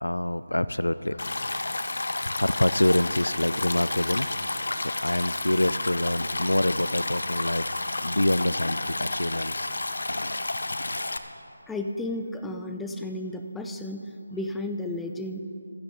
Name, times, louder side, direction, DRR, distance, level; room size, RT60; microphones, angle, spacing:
voice 1, 0.0-1.2 2.2-7.7 8.0-9.7 10.1-10.5 10.8-11.0, left 1 dB, 85° left, 16 dB, 0.4 m, -26 dB
Stream, 1.2-11.2, left 2 dB, 65° left, 0.8 m, -31 dB
voice 2, 11.7-14.1 14.3-15.4, left 1 dB, 5° left, 4 dB, 0.5 m, -33 dB
15.5 x 14.0 x 4.0 m, 2.8 s
figure-of-eight pair, 160°, 0 cm